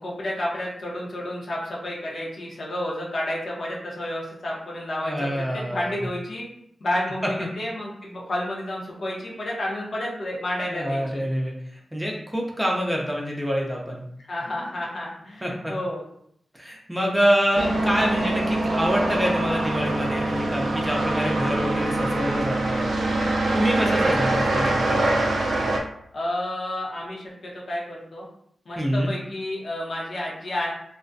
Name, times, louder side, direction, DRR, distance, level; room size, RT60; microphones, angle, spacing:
voice 1, 0.0-6.4 6.8-11.2 14.3-16.0 26.1-28.2 28.7-30.7, left 1 dB, 70° left, -4 dB, 0.7 m, -30 dB
voice 2, 5.0-6.0 10.7-11.5 11.9-14.0 15.4-15.7 16.5-22.9 23.5-25.2 28.8-29.1, equal, 10° right, -1 dB, 0.5 m, -26 dB
sound 1, 17.5-25.8, right 2 dB, 80° right, 0.4 m, -24 dB
2.3 x 2.1 x 2.5 m, 0.70 s
wide cardioid pair, 75°, 0 cm